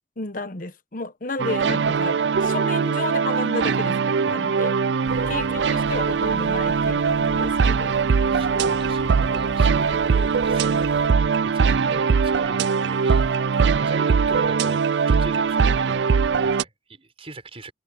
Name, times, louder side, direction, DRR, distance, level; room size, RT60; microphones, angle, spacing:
voice 1, 0.2-4.7 5.3-7.9, left 3 dB, 50° left, 1.1 m, -32 dB
sound 1, 1.4-16.6, right 5 dB, 75° right, 0.4 m, -21 dB
voice 2, 5.0-5.7 7.6-8.0 8.3-11.1 11.4-17.7, right 2 dB, 35° right, 5.0 m, -40 dB
sound 2, 5.1-11.1, equal, 75° left, 3.4 m, -40 dB
head